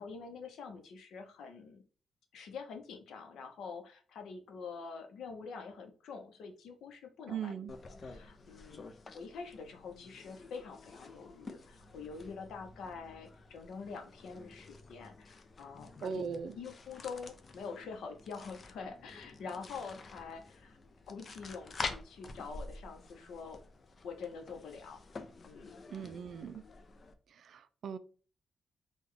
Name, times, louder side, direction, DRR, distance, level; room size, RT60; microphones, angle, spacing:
voice 1, 0.0-1.8 2.3-7.6 8.0-16.3 16.5-20.8 21.1-23.6 24.0-25.8, left 5 dB, 85° left, 0.7 m, -46 dB
voice 2, 7.3-7.7 16.0-16.6 25.9-26.6 27.3-28.0, right 6 dB, 70° right, 0.4 m, -39 dB
sound 1, 7.7-27.1, left 3 dB, 45° left, 0.5 m, -48 dB
3.3 x 2.3 x 3.6 m
cardioid pair, 85°, 0 cm